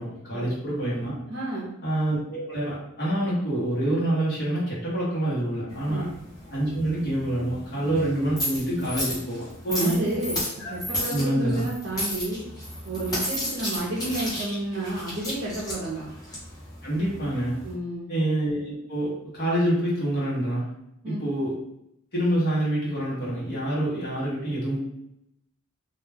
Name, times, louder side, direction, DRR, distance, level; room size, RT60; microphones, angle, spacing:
voice 1, 0.0-1.1 1.8-6.1 6.5-10.0 10.6-10.7 11.1-11.6 16.8-17.6 18.1-20.6 21.0-21.6 22.1-24.8, right 1 dB, 45° left, -8 dB, 0.9 m, -26 dB
voice 2, 1.3-1.7 5.9-6.1 9.7-10.4 10.7-12.4 12.8-16.1 17.6-18.1 21.0-21.2, right 1 dB, 50° right, -6 dB, 0.6 m, -31 dB
sound 1, 5.7-17.7, left 1 dB, 15° left, 0.8 m, -34 dB
2.3 x 2.2 x 3.3 m, 0.80 s
head